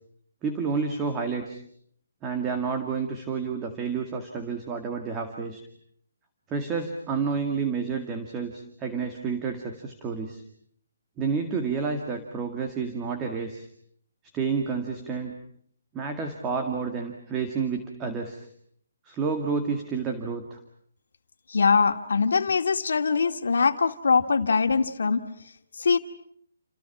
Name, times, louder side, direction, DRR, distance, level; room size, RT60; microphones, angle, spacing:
voice 1, 0.4-1.6 2.2-5.6 6.5-10.4 11.2-13.7 14.3-15.4 15.9-18.5 19.0-20.6, right 5 dB, 15° right, 4 dB, 2.1 m, -30 dB
voice 2, 21.5-25.2 25.8-26.0, left 5 dB, 75° left, 7 dB, 2.2 m, -22 dB
29.5 x 28.0 x 6.0 m, 0.64 s
hypercardioid pair, 170°, 0 cm